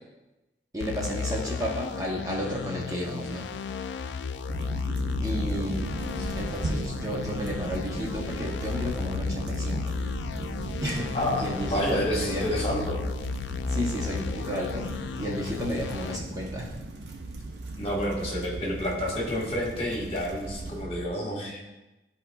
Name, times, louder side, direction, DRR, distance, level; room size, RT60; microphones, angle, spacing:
voice 1, 0.7-3.5 5.2-6.0 6.4-9.9 10.8-11.1 11.4-12.4 13.7-16.7, equal, 20° right, -2 dB, 0.8 m, -32 dB
sound 1, 0.8-16.2, left 5 dB, 80° left, 0.3 m, -34 dB
sound 2, 4.5-20.8, right 1 dB, 75° right, 0.8 m, -37 dB
sound 3, 8.4-21.2, right 3 dB, 40° right, 0.3 m, -42 dB
voice 2, 11.1-13.0 17.8-21.7, left 1 dB, 35° left, -3 dB, 1.5 m, -29 dB
12.5 x 4.3 x 2.3 m, 1.0 s
head